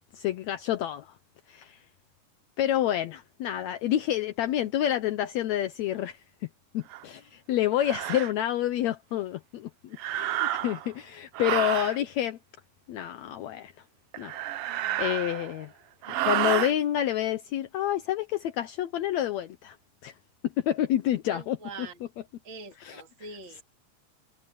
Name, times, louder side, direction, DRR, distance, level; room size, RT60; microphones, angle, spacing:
voice 1, 0.1-1.1 1.5-1.8 2.6-6.2 6.7-12.4 12.9-13.7 14.2-14.4 15.0-15.7 16.2-19.8 20.0-20.1 20.6-21.6 22.8-23.0, left 12 dB, 70° left, 2.0 m, -28 dB
sound 1, 6.9-7.0 7.8-8.3 9.9-10.9 11.3-12.0 14.1-15.6 16.0-16.7, right 13 dB, 80° right, 1.3 m, -30 dB
voice 2, 21.3-22.0 22.4-23.6, right 3 dB, 40° right, 3.6 m, -43 dB
omnidirectional pair, 3.5 m